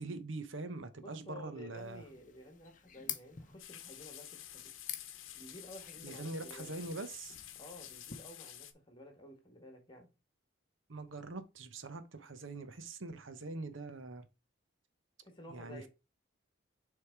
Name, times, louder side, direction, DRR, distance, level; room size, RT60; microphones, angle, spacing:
voice 1, 0.0-2.0 6.0-7.4 10.9-14.3 15.5-15.9, right 3 dB, 75° right, 0.9 m, -43 dB
voice 2, 0.9-4.7 5.3-6.7 7.5-10.1 15.2-15.9, left 1 dB, 25° left, 1.6 m, -53 dB
sound 1, 1.7-8.3, left 10 dB, 40° left, 0.7 m, -49 dB
sound 2, 3.6-8.7, left 12 dB, 80° left, 0.8 m, -50 dB
6.5 x 3.5 x 4.5 m
head